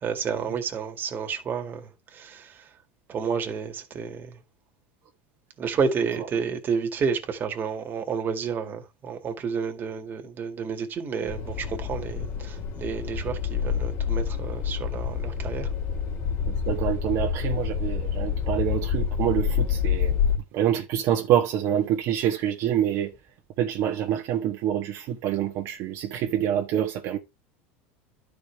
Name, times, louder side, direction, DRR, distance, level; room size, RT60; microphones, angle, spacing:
voice 1, 0.0-2.6 3.1-4.3 5.6-15.7, right 6 dB, 35° right, 2.1 m, -30 dB
sound 1, 11.3-20.4, left 7 dB, 50° left, 2.7 m, -27 dB
voice 2, 16.4-20.1 20.5-23.1 23.6-27.2, right 10 dB, 55° right, 1.4 m, -26 dB
12.0 x 5.1 x 3.4 m
supercardioid pair, 110°, 6 cm